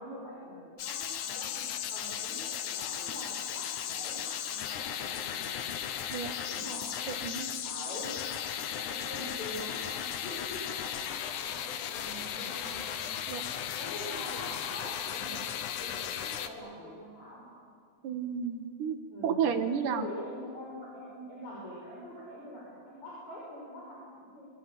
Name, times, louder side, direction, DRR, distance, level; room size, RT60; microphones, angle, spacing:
voice 1, 0.0-5.7 6.5-6.8 7.6-8.2 8.7-12.8 13.8-17.4 19.1-19.4 19.8-24.5, left 1 dB, 45° left, -5 dB, 7.4 m, -44 dB
sound 1, 0.8-16.5, left 9 dB, 65° left, 2.4 m, -36 dB
voice 2, 7.1-7.5 13.3-13.4 18.0-19.0 19.2-20.1, right 7 dB, 65° right, 8 dB, 2.6 m, -31 dB
28.0 x 25.0 x 7.8 m, 2.3 s
omnidirectional pair, 4.3 m